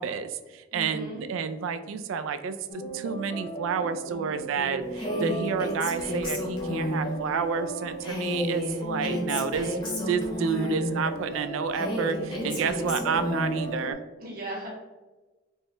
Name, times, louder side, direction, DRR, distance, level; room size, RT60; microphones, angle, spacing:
voice 1, 0.0-14.0, right 6 dB, 85° right, 11 dB, 0.3 m, -30 dB
voice 2, 0.7-1.2 12.3-12.8 14.2-14.7, equal, 45° right, -5 dB, 1.1 m, -37 dB
sound 1, 2.7-13.9, right 1 dB, 40° left, 0.4 m, -36 dB
Female speech woman speaking, 4.9-7.1 8.0-10.9 11.7-13.6, left 1 dB, 25° left, 0.8 m, -31 dB
4.4 x 2.1 x 3.3 m, 1.2 s
head